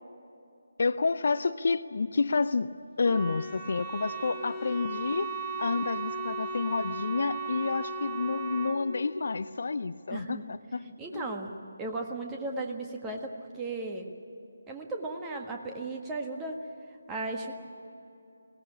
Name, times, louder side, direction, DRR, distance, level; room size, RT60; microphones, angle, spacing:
voice 1, 0.8-2.7 3.0-5.3 5.6-10.8 11.1-11.3, left 4 dB, 50° left, 13 dB, 0.6 m, -29 dB
Wind instrument woodwind instrument, 3.0-8.8, right 3 dB, 10° left, 1.9 m, -36 dB
voice 2, 10.1-10.4 10.8-11.5 11.8-14.0 14.7-16.6 17.1-17.5, right 2 dB, 10° right, 1 dB, 1.6 m, -36 dB
22.0 x 18.5 x 8.7 m, 2.8 s
figure-of-eight pair, 150°, 0 cm